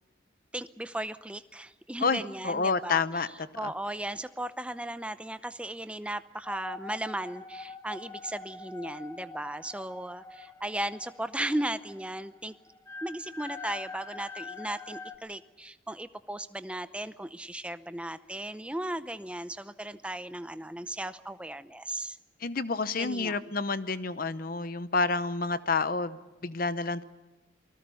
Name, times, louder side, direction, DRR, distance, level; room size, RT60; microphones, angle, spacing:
voice 1, 0.5-12.5 13.0-22.2 23.0-23.5, right 1 dB, 5° right, 12 dB, 0.6 m, -36 dB
voice 2, 2.0-3.3 3.6-3.7 22.4-27.0, left 4 dB, 50° left, 14 dB, 0.8 m, -29 dB
sound 1, 6.4-15.2, left 4 dB, 15° left, 1.1 m, -44 dB
28.5 x 20.0 x 5.6 m, 1.2 s
head